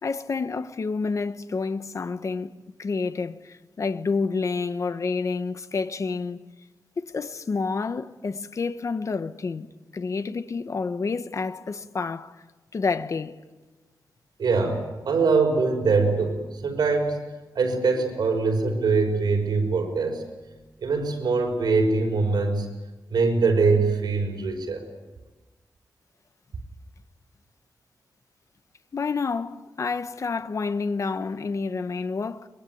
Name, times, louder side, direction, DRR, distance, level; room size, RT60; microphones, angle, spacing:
voice 1, 0.0-6.4 7.0-9.7 9.9-12.3 12.7-13.4 28.9-32.5, left 4 dB, 45° left, 1.2 m, -29 dB
voice 2, 14.4-17.3 17.5-20.2 20.8-22.7 23.1-24.8, right 4 dB, 80° right, 5.8 m, -23 dB
23.5 x 23.0 x 9.5 m
wide cardioid pair, 160°, 7 cm